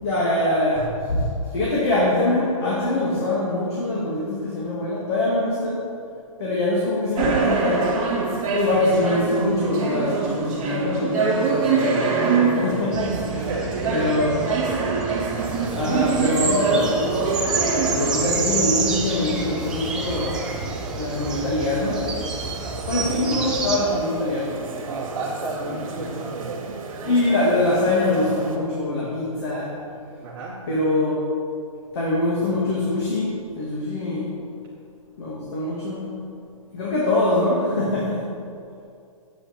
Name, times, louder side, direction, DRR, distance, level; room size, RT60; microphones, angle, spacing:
voice 1, 0.0-5.8 6.4-8.0 8.5-12.2 12.5-13.4 13.9-14.4 15.8-17.0 17.9-20.4 21.0-22.1 22.9-24.6 26.0-26.1 27.0-29.7 30.7-31.2 31.9-34.3 35.2-36.0 36.7-38.3, left 2 dB, 50° left, -6 dB, 2.2 m, -23 dB
sound 1, 7.2-18.1, right 5 dB, 20° right, 2.1 m, -24 dB
sound 2, 12.9-23.8, right 4 dB, 5° right, 0.3 m, -29 dB
voice 2, 13.4-14.4 22.7-23.2 24.9-26.8 30.2-30.6, right 3 dB, 40° right, -7 dB, 1.5 m, -32 dB
sound 3, 15.3-28.6, right 3 dB, 65° right, 1.7 m, -34 dB
10.5 x 8.5 x 4.4 m, 2.5 s
hypercardioid pair, 165°, 18 cm